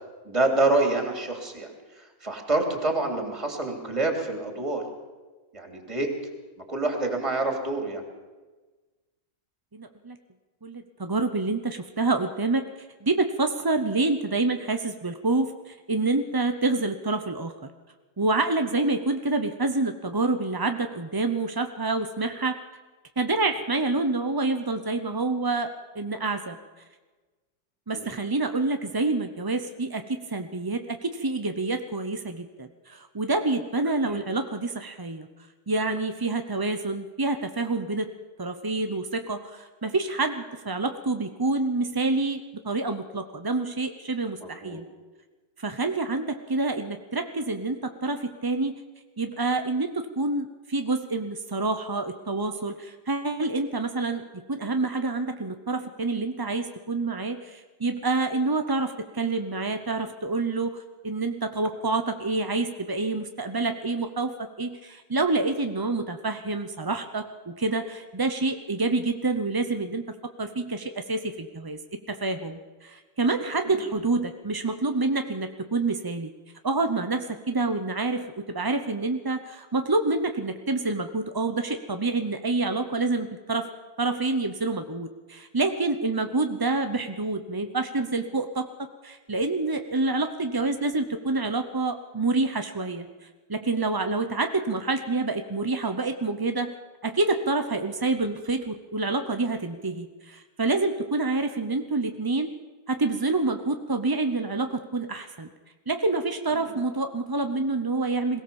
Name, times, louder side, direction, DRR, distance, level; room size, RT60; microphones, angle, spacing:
voice 1, 0.2-4.8 5.5-6.1 6.7-8.0 27.9-28.1 34.0-34.2 44.4-44.8 73.6-73.8 106.5-106.7, right 2 dB, 15° right, 3 dB, 3.2 m, -27 dB
voice 2, 9.7-10.2 10.6-12.6 13.0-17.5 18.2-22.6 23.2-26.6 27.9-35.3 35.7-38.1 38.4-44.9 45.6-48.8 49.2-70.0 70.4-71.8 72.1-76.3 76.6-83.7 84.0-93.1 93.5-96.7 97.0-102.5 102.9-105.5 105.9-108.4, right 3 dB, 35° right, 7 dB, 0.3 m, -27 dB
22.0 x 17.0 x 7.1 m, 1.3 s
omnidirectional pair, 2.0 m